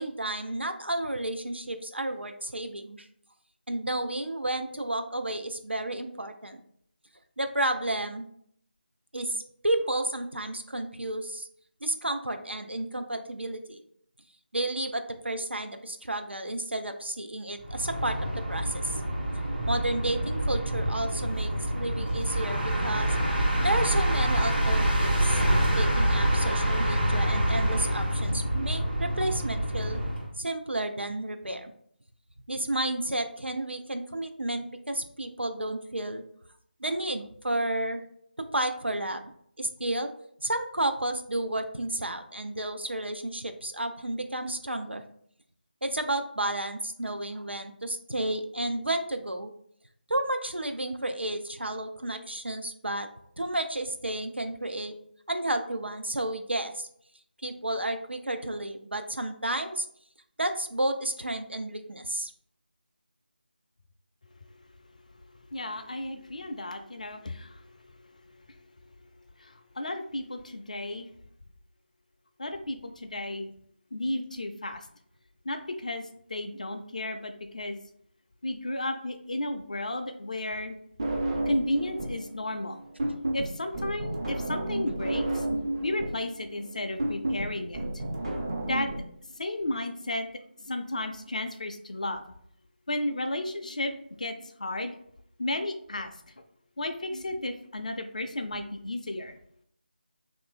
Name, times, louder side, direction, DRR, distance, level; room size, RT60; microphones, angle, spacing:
voice 1, 0.0-3.1 3.7-6.6 7.4-8.3 9.1-11.5 11.8-13.8 14.5-19.0 19.3-23.2 23.6-25.4 25.8-30.0 30.4-31.7 32.5-36.2 36.8-38.0 38.4-39.2 39.6-40.1 40.4-45.0 45.8-49.5 50.1-53.1 53.4-54.9 55.3-56.9 57.4-59.9 60.4-62.3, right 1 dB, 90° right, 7 dB, 0.5 m, -31 dB
sound 1, 17.6-30.3, right 1 dB, 60° right, 1.2 m, -26 dB
voice 2, 65.2-68.9 69.4-71.1 72.4-73.5 73.9-74.9 75.4-77.8 78.4-80.8 81.4-82.8 83.3-85.5 85.8-88.0 88.6-88.9 89.3-90.3 90.6-92.2 92.9-95.0 95.4-96.1 96.8-99.4, left 1 dB, 40° left, 7 dB, 0.4 m, -33 dB
sound 2, 81.0-82.3 82.5-89.0, right 1 dB, 30° right, 0.4 m, -31 dB
2.9 x 2.5 x 3.5 m, 0.68 s
figure-of-eight pair, 160°, 6 cm